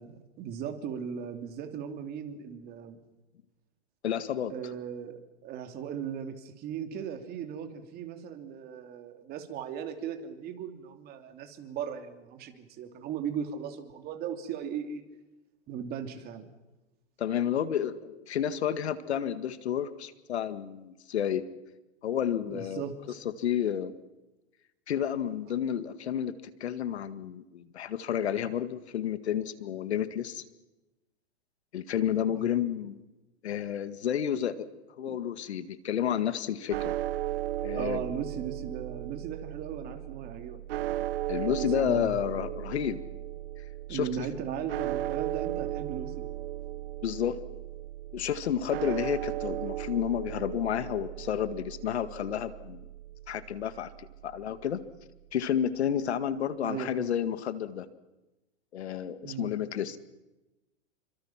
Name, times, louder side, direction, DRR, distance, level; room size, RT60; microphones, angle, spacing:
voice 1, 0.0-3.0 4.5-15.0 15.7-16.5 22.5-23.2 32.2-32.6 35.0-35.2 37.7-40.9 41.3-42.3 43.9-46.3 56.6-57.1 59.2-59.5, right 8 dB, 30° right, 6 dB, 2.9 m, -38 dB
voice 2, 4.0-4.5 17.2-21.4 22.0-22.8 23.4-23.9 24.9-26.3 26.6-30.4 31.7-33.0 33.4-34.7 35.0-36.9 37.6-38.0 41.3-43.0 43.9-44.3 47.0-47.4 48.1-52.8 53.3-54.8 55.3-57.9 58.7-60.0, left 9 dB, 70° left, 12 dB, 2.0 m, -31 dB
sound 1, 36.7-54.9, right 14 dB, 60° right, 0.9 m, -36 dB
29.0 x 25.0 x 5.9 m, 1.0 s
hypercardioid pair, 140°, 33 cm